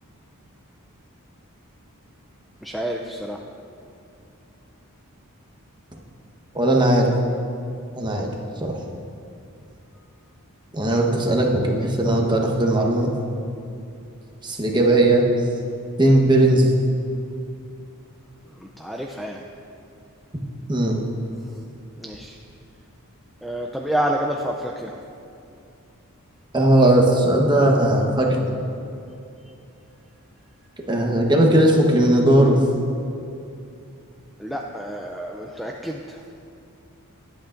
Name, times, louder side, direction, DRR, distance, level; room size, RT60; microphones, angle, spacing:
voice 1, 2.6-3.4 18.6-19.4 22.0-22.4 23.4-25.0 34.4-36.2, right 1 dB, ahead, 0 dB, 0.4 m, -28 dB
voice 2, 6.5-7.1 8.0-8.3 8.6-8.8 10.7-13.1 14.4-15.3 16.0-16.7 20.7-21.0 26.5-28.5 30.9-32.6, right 1 dB, 20° right, 0 dB, 1.1 m, -18 dB
20.5 x 8.3 x 2.5 m, 2.6 s
head